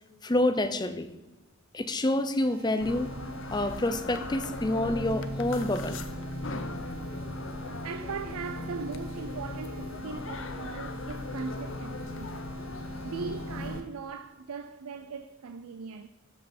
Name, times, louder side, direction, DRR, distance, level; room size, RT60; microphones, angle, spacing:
voice 1, 0.2-1.1 1.7-3.1 3.5-6.0, left 1 dB, 20° left, 0.5 m, -27 dB
sound 1, 2.4-13.8, right 1 dB, 75° right, 1.3 m, -44 dB
sound 2, 2.8-13.8, left 2 dB, 60° left, 0.7 m, -38 dB
voice 2, 7.6-12.4 13.0-16.1, right 5 dB, 90° right, 0.5 m, -39 dB
13.5 x 5.5 x 4.3 m
head